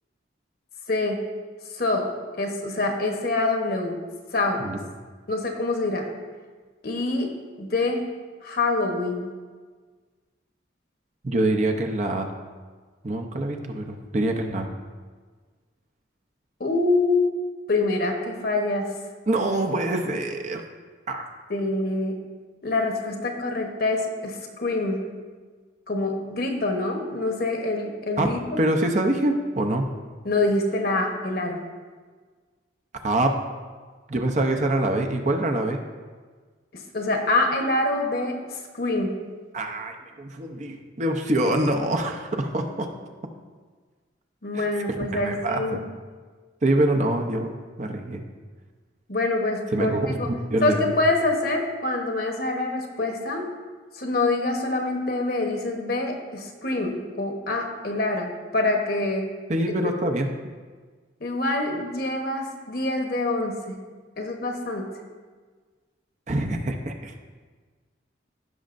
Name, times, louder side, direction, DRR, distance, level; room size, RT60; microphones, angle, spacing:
voice 1, 0.9-1.2 1.7-2.1 2.4-4.0 4.3-4.6 5.3-6.0 6.8-7.3 7.6-8.0 8.4-9.3 16.6-17.3 17.7-18.9 19.6-19.7 21.5-22.2 22.6-25.0 25.9-28.6 30.2-31.6 36.9-39.1 44.4-45.8 49.1-50.3 50.6-53.5 53.9-59.3 61.2-63.8 64.2-64.9, left 2 dB, 50° left, 2 dB, 1.1 m, -25 dB
voice 2, 11.2-12.3 13.0-14.7 19.3-20.6 21.1-21.3 28.2-29.9 33.0-33.4 34.1-35.8 39.5-42.9 44.5-44.7 45.1-45.8 46.6-48.2 49.7-50.9 59.5-60.3 66.3-67.1, right 1 dB, 40° right, 4 dB, 0.7 m, -25 dB
16.0 x 6.2 x 2.6 m, 1.5 s
head